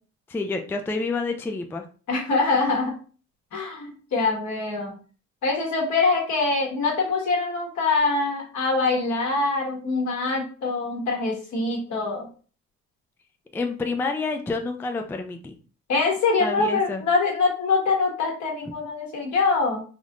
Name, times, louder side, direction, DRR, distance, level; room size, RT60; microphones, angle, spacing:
voice 1, 0.3-1.9 13.5-15.6 16.4-17.0, left 3 dB, 10° left, 5 dB, 0.3 m, -28 dB
voice 2, 2.1-3.0 3.5-5.0 5.4-12.3 15.9-19.8, left 3 dB, 70° left, -1 dB, 1.4 m, -24 dB
3.5 x 2.6 x 2.4 m, 0.39 s
cardioid pair, 90°, 30 cm